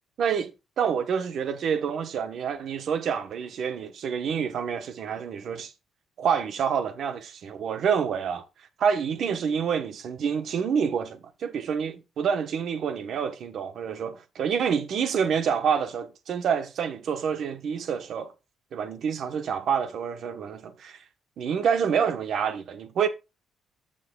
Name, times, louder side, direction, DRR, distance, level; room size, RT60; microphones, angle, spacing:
voice 1, 0.2-0.5 0.8-5.7 6.2-8.4 8.8-18.3 18.7-21.0 21.4-23.1, right 7 dB, 55° right, 1.0 m, -27 dB
15.0 x 5.7 x 2.3 m
cardioid pair, 170°, 0 cm